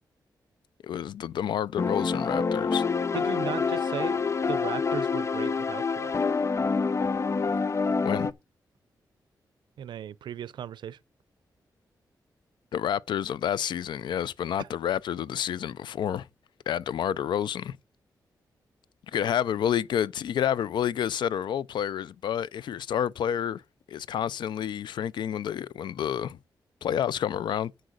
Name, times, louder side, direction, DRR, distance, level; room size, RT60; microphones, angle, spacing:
voice 1, 0.8-2.8 8.0-8.3 12.7-16.3 16.7-17.8 19.1-23.6 23.9-26.4 26.8-27.7, left 9 dB, 90° left, 0.4 m, -29 dB
sound 1, 1.8-8.3, left 5 dB, 40° left, 0.6 m, -27 dB
voice 2, 3.1-6.3 9.8-11.0 14.6-14.7, right 9 dB, 90° right, 0.5 m, -37 dB
7.6 x 6.4 x 6.4 m
cardioid pair, 80°, 8 cm